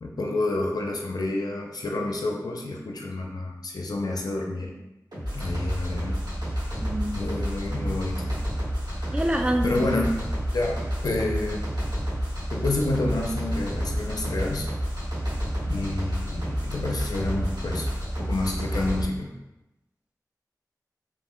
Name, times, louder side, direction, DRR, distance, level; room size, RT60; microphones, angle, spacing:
voice 1, 0.0-4.7 5.3-6.2 7.1-8.4 9.1-9.2 9.6-10.2 10.5-11.7 12.5-14.7 15.6-17.9 18.2-19.3, left 2 dB, 75° left, 1 dB, 0.4 m, -29 dB
sound 1, 5.1-19.0, equal, 85° right, 1.2 m, -30 dB
voice 2, 6.8-7.2 9.1-9.9, right 1 dB, 15° right, 4 dB, 0.3 m, -26 dB
2.8 x 2.1 x 3.6 m, 0.98 s
wide cardioid pair, 60°, 7 cm